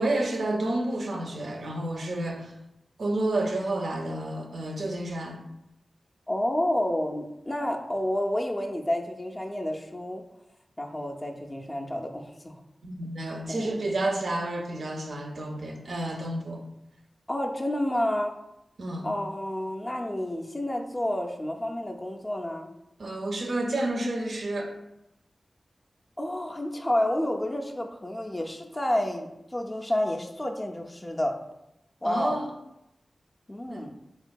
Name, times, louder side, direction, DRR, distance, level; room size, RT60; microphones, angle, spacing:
voice 1, 0.0-2.5 3.0-5.4 12.8-16.6 18.8-19.1 23.0-24.8 32.0-32.5 33.7-34.0, right 1 dB, 75° right, 2 dB, 0.4 m, -30 dB
voice 2, 6.3-10.2 10.8-12.6 13.5-13.8 17.3-18.3 19.0-22.7 26.2-31.3 32.0-32.4 33.5-33.9, left 1 dB, 20° left, 1 dB, 0.3 m, -30 dB
3.5 x 2.5 x 2.2 m, 0.85 s
wide cardioid pair, 100°, 0 cm